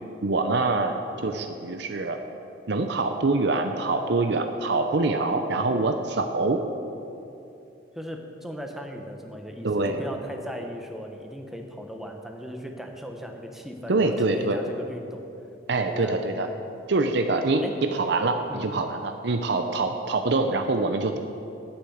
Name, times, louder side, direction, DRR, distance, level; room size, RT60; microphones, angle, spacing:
voice 1, 0.2-0.9 1.2-2.2 2.7-6.6 9.6-10.0 13.9-14.6 15.7-16.5 16.9-17.6 17.9-21.2, right 3 dB, 65° right, 6 dB, 0.7 m, -25 dB
voice 2, 1.0-1.7 7.9-15.2 15.9-16.6 17.6-17.8 18.5-18.7, equal, ahead, 3 dB, 1.0 m, -38 dB
10.0 x 8.8 x 7.9 m, 2.7 s
head